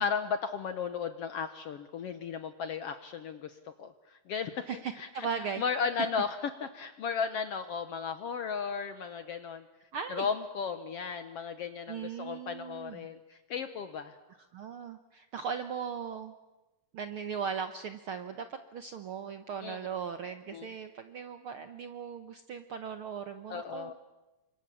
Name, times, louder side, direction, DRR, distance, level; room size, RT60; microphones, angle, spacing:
voice 1, 0.0-3.5 3.8-3.9 4.3-4.7 5.0-5.3 5.6-6.4 6.6-9.6 10.1-14.1 19.6-19.8 20.5-20.7 23.5-23.9, left 6 dB, 65° left, 10 dB, 1.6 m, -35 dB
voice 2, 4.6-5.6 9.9-10.3 11.9-13.1 14.5-16.3 16.9-23.9, right 6 dB, 75° right, 9 dB, 1.2 m, -38 dB
29.0 x 25.5 x 7.2 m, 1.1 s
omnidirectional pair, 3.8 m